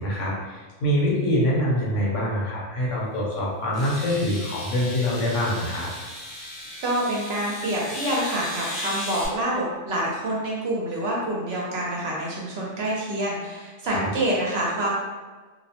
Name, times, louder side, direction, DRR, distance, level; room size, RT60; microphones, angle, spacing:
voice 1, 0.0-5.9 13.9-14.1, equal, 75° left, -4 dB, 1.0 m, -25 dB
sound 1, 2.9-3.0 3.7-9.3, left 1 dB, 35° left, 0.7 m, -36 dB
voice 2, 6.8-14.9, right 1 dB, 65° right, -4 dB, 0.7 m, -27 dB
2.6 x 2.0 x 2.7 m, 1.4 s
omnidirectional pair, 1.3 m